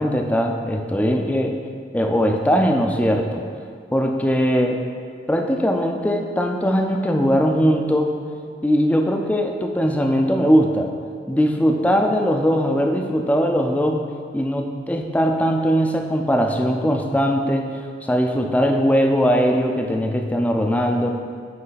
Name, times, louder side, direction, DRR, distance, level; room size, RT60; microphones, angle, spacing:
voice 1, 0.0-1.6 1.9-3.4 3.9-4.8 5.3-8.2 8.6-10.9 11.3-14.0 14.3-17.7 18.0-21.1, equal, 10° left, 3 dB, 0.4 m, -20 dB
9.4 x 3.2 x 4.0 m, 2.1 s
head